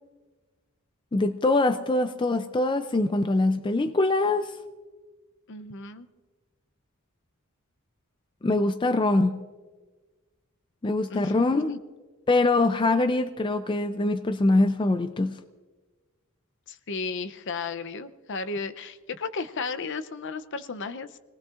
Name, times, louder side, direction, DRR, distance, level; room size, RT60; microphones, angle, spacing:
voice 1, 1.1-4.5 8.4-9.4 10.8-11.7 12.3-15.4, left 2 dB, 20° left, 0.4 m, -23 dB
voice 2, 5.5-6.1 11.1-11.8 16.7-21.1, left 4 dB, 55° left, 0.6 m, -34 dB
28.0 x 19.0 x 2.5 m
head